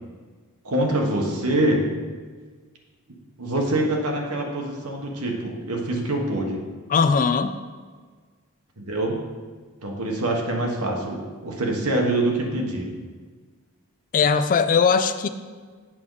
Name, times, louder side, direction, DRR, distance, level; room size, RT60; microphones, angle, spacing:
voice 1, 0.6-1.8 3.4-6.6 8.8-9.2 9.8-12.9, right 1 dB, 85° right, 1 dB, 1.3 m, -25 dB
voice 2, 6.9-7.5 14.1-15.3, left 5 dB, 40° left, 11 dB, 0.3 m, -19 dB
7.7 x 6.1 x 3.9 m, 1.5 s
head